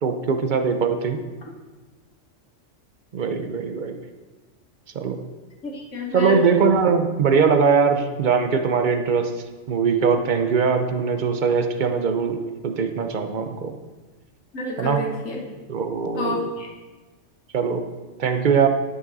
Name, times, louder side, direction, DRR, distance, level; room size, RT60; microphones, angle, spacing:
voice 1, 0.0-1.2 3.1-4.0 4.9-5.2 6.1-9.3 9.7-13.7 14.8-15.0 15.7-16.3 17.5-17.9 18.2-18.7, right 5 dB, 45° right, 7 dB, 0.8 m, -21 dB
voice 2, 5.6-6.4 14.5-15.5 16.1-16.7, left 2 dB, 75° left, -1 dB, 1.7 m, -29 dB
11.5 x 6.7 x 4.0 m, 1.3 s
omnidirectional pair, 1.3 m